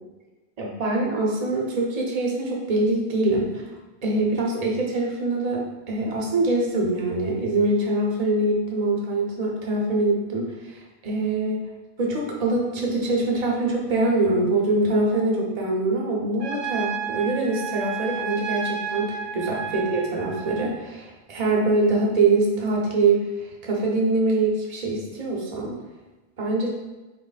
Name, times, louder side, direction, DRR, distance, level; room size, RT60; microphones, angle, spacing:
voice 1, 0.6-3.6 4.0-11.6 12.0-25.8 26.4-26.7, right 2 dB, 40° right, -2 dB, 0.9 m, -24 dB
Trumpet, 16.4-20.7, right 7 dB, 80° right, 1.0 m, -32 dB
3.6 x 3.0 x 4.0 m, 1.2 s
omnidirectional pair, 1.1 m